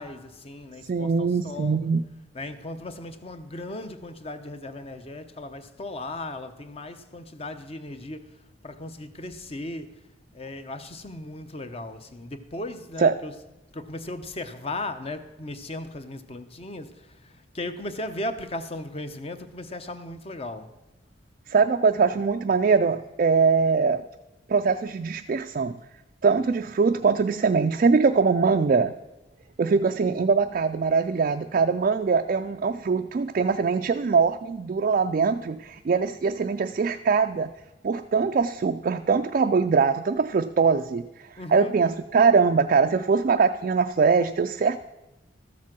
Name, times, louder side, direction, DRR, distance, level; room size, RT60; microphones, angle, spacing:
voice 1, 0.0-1.8 2.3-10.0 10.3-13.3 13.7-20.7 41.4-41.8, left 2 dB, 30° left, 0.7 m, -37 dB
voice 2, 0.9-2.0 13.0-13.1 21.5-24.1 24.5-25.8 26.2-28.9 29.6-37.5 37.8-44.8, right 5 dB, 45° right, 0.3 m, -22 dB
13.0 x 7.3 x 6.0 m
head